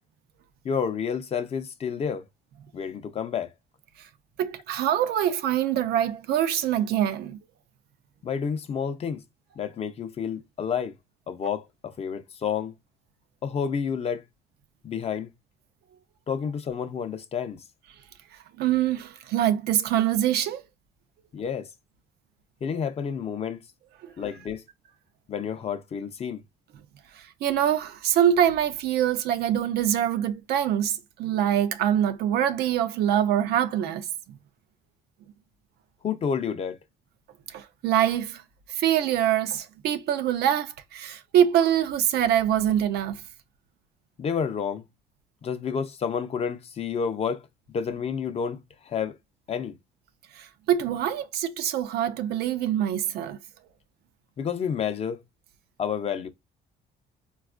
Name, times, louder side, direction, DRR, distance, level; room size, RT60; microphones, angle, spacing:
voice 1, 0.6-2.2 2.7-3.5 8.2-9.2 9.6-10.9 11.3-12.7 13.4-14.2 14.8-15.3 16.3-17.6 21.3-21.7 22.6-23.6 24.2-24.6 25.3-26.4 36.0-36.8 44.2-44.9 45.4-47.5 47.7-49.2 49.5-49.7 54.4-55.2 55.8-56.3, left 7 dB, 35° left, 0.5 m, -30 dB
voice 2, 4.4-7.4 18.6-20.6 24.0-24.1 27.1-34.1 37.5-38.4 38.7-43.2 50.3-53.4, right 10 dB, 70° right, 0.5 m, -24 dB
4.1 x 2.3 x 2.4 m
cardioid pair, 110°, 17 cm